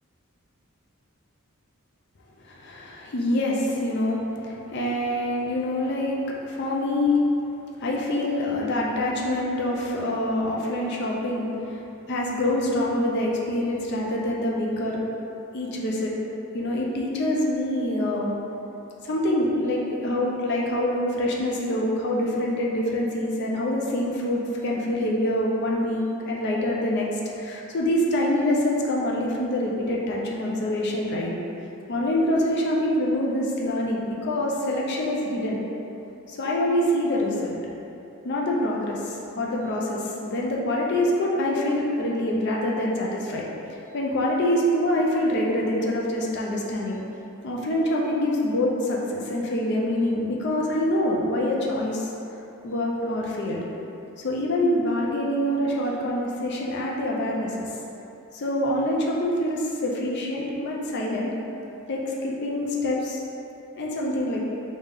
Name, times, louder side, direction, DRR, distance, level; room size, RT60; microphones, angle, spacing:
voice 1, 2.4-7.2 7.8-15.0 15.5-16.1 16.5-18.3 19.0-31.3 31.9-35.6 36.3-37.6 38.2-43.4 43.7-47.0 47.4-52.1 52.6-53.6 54.2-57.7 58.3-61.3 61.9-63.2 63.8-64.4, left 1 dB, 55° left, -3 dB, 0.5 m, -25 dB
3.4 x 2.7 x 3.5 m, 2.9 s
head